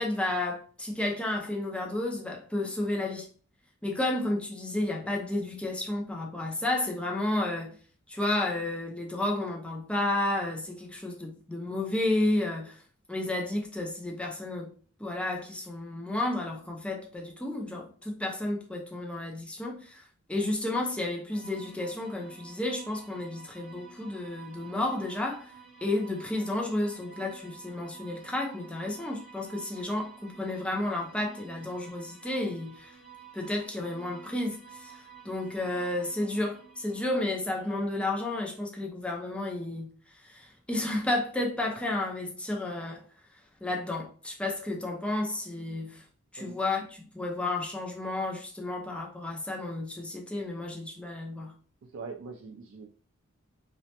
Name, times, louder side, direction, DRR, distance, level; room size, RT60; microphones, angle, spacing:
voice 1, 0.0-3.3 3.8-7.7 8.1-12.8 13.1-14.7 15.0-20.0 20.3-25.5 25.8-32.9 33.3-39.9 40.2-43.0 43.6-46.0 46.3-51.5, left 2 dB, 5° left, 0.5 m, -32 dB
sound 1, 21.3-37.9, right 6 dB, 55° left, 1.3 m, -51 dB
voice 2, 51.9-52.9, right 4 dB, 70° right, 0.3 m, -42 dB
3.1 x 2.0 x 2.8 m
head